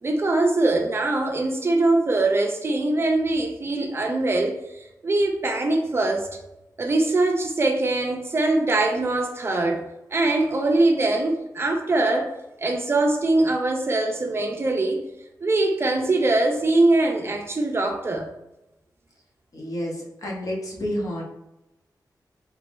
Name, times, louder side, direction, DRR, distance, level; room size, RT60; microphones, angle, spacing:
voice 1, 0.0-6.3 6.8-9.8 10.1-12.3 12.6-15.0 15.4-18.3, right 2 dB, 35° right, 0.4 m, -22 dB
voice 2, 19.5-19.9 20.2-21.2, equal, 55° left, 0.8 m, -29 dB
3.4 x 2.9 x 2.5 m
wide cardioid pair, 145°, 7 cm